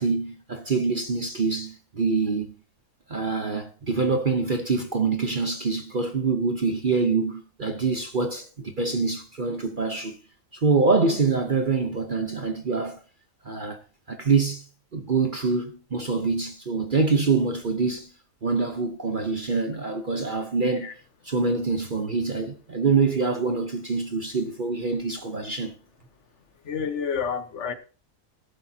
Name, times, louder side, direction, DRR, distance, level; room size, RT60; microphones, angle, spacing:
voice 1, 0.0-2.5 3.1-10.2 10.5-13.0 13.4-13.8 14.1-14.6 14.9-18.1 18.4-20.9 21.2-25.7, right 4 dB, 40° right, 1.0 m, -25 dB
voice 2, 26.6-27.7, left 6 dB, 55° left, 1.3 m, -29 dB
14.0 x 11.5 x 2.8 m
omnidirectional pair, 1.6 m